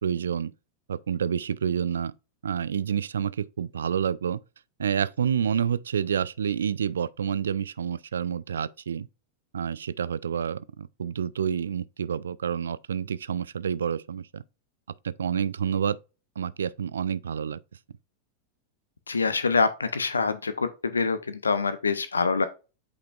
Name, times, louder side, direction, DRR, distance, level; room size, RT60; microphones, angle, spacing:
voice 1, 0.0-0.5 0.9-2.1 2.4-4.4 4.8-9.1 9.5-14.4 15.0-16.0 16.4-17.6, right 8 dB, 65° right, 0.4 m, -28 dB
voice 2, 19.1-22.5, left 4 dB, 75° left, 0.6 m, -25 dB
8.3 x 5.0 x 2.4 m
figure-of-eight pair, 90°, 0 cm